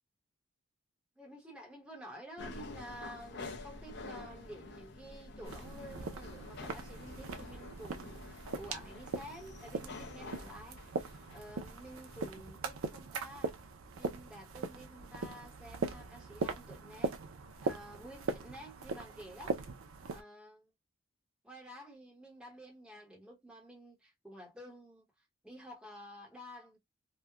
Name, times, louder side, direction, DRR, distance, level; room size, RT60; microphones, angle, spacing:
voice 1, 1.2-11.0 11.3-13.6 13.9-17.2 17.6-19.6 20.1-20.7 21.4-25.0 25.4-26.8, equal, 5° right, 0.9 m, -51 dB
sound 1, 2.4-12.3, left 3 dB, 55° left, 0.5 m, -48 dB
sound 2, 5.4-20.2, right 4 dB, 85° right, 0.5 m, -40 dB
3.0 x 2.2 x 2.2 m
head